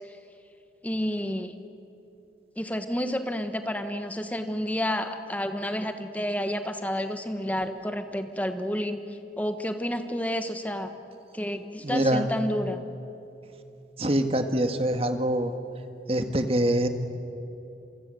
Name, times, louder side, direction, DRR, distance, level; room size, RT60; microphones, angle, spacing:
voice 1, 0.8-1.5 2.6-9.0 9.4-10.9 11.3-12.8, equal, 10° left, 8 dB, 1.3 m, -30 dB
voice 2, 11.8-12.3 14.0-15.5 16.1-16.9, right 1 dB, 35° right, 7 dB, 1.7 m, -24 dB
28.0 x 24.0 x 7.8 m, 2.8 s
head